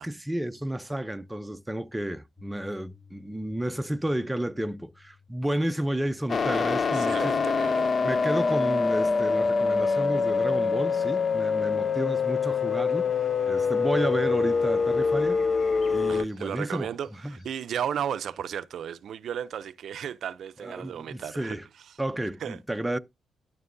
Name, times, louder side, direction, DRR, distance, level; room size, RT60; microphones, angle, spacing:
voice 1, 0.0-7.5 8.0-15.5 15.9-16.9 17.2-17.4 20.6-21.7 22.0-23.0, right 1 dB, 10° right, 0.5 m, -31 dB
Piano, 2.4-10.5, left 5 dB, 25° left, 1.3 m, -58 dB
sound 1, 6.3-16.2, left 5 dB, 45° left, 0.4 m, -25 dB
voice 2, 6.9-7.9 16.1-21.6 22.4-22.6, right 9 dB, 70° right, 0.4 m, -34 dB
sound 2, 13.4-18.5, left 2 dB, 60° left, 4.5 m, -60 dB
13.5 x 6.0 x 2.6 m
cardioid pair, 85°, 0 cm